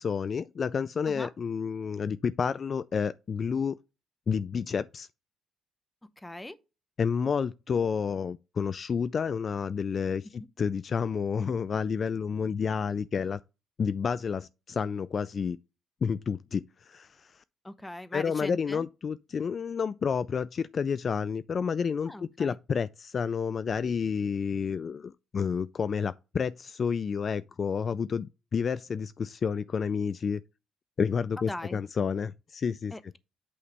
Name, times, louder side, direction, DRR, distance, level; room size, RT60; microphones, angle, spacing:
voice 1, 0.0-3.8 4.3-5.1 7.0-13.4 13.8-15.6 16.0-17.4 18.1-22.1 22.4-30.4 31.0-32.9, left 6 dB, 45° left, 0.3 m, -30 dB
voice 2, 6.2-6.6 17.6-18.8 22.1-22.6 31.4-31.8 32.9-33.2, left 1 dB, 10° left, 0.8 m, -40 dB
8.5 x 3.2 x 5.3 m
cardioid pair, 90°, 0 cm